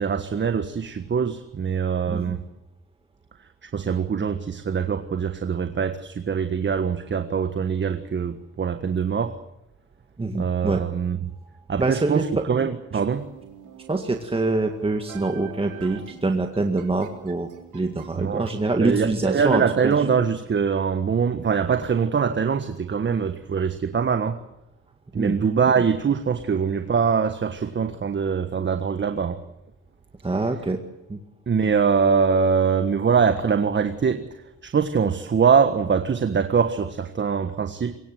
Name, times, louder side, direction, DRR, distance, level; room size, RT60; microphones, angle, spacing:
voice 1, 0.0-2.4 3.6-9.4 10.3-11.3 11.7-13.2 18.1-18.5 18.8-24.4 25.1-29.4 31.5-38.0, right 6 dB, 40° right, 9 dB, 1.5 m, -23 dB
voice 2, 2.1-2.4 10.2-10.8 11.8-12.5 13.9-19.9 25.1-25.4 30.2-30.8 31.1-31.2, right 2 dB, 20° right, 4 dB, 2.0 m, -25 dB
sound 1, 13.2-20.0, right 9 dB, 90° right, 3.6 m, -45 dB
23.5 x 20.5 x 8.0 m, 0.93 s
cardioid pair, 90°, 30 cm